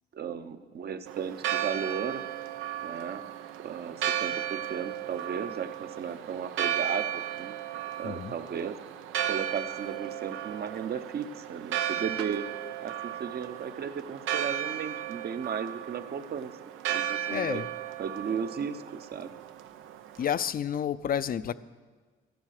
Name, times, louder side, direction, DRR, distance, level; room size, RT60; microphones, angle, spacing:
voice 1, 0.1-2.2 2.8-3.2 3.6-7.6 8.0-8.7 9.3-12.5 12.8-16.5 16.9-17.6 18.0-19.3, right 7 dB, 55° right, 9 dB, 0.9 m, -35 dB
Church bell, 1.1-20.5, right 11 dB, 90° right, 0.7 m, -35 dB
voice 2, 8.0-8.3 17.3-17.7 20.2-21.5, left 9 dB, 45° left, 16 dB, 0.5 m, -30 dB
12.5 x 10.5 x 6.6 m, 1.4 s
cardioid pair, 90°, 20 cm